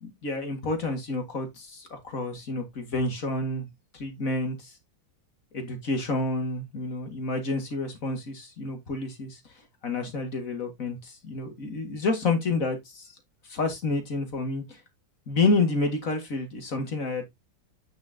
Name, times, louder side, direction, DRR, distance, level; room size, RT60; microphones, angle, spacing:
voice 1, 0.0-3.7 3.9-4.7 5.5-9.4 9.8-13.1 13.5-14.8 15.3-17.2, left 3 dB, 45° left, 2.4 m, -29 dB
8.7 x 6.5 x 2.8 m
omnidirectional pair, 2.1 m